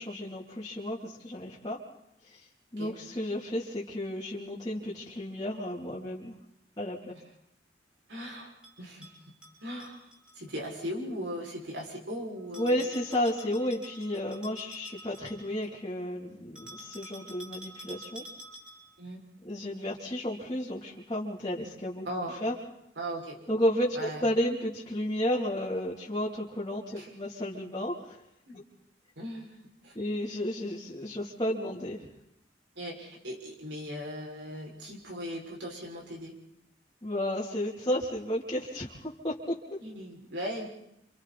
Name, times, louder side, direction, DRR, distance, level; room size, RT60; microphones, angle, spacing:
voice 1, 0.0-1.8 2.2-2.5 2.7-6.3 6.8-7.1 12.6-18.3 19.4-22.1 22.4-22.5 23.5-28.2 29.9-32.1 37.0-39.8, left 1 dB, 25° left, -7 dB, 3.2 m, -32 dB
voice 2, 8.1-9.1 9.6-10.1 10.3-12.8 19.0-19.2 22.0-22.4 23.0-23.4 23.9-24.2 26.9-27.1 28.5-28.6 29.2-29.9 32.8-36.4 39.8-40.8, equal, 75° right, -1 dB, 6.2 m, -38 dB
Bell, 8.6-10.4 12.5-15.8 16.6-19.0, right 1 dB, 5° right, 6.1 m, -48 dB
30.0 x 27.5 x 4.3 m, 0.78 s
head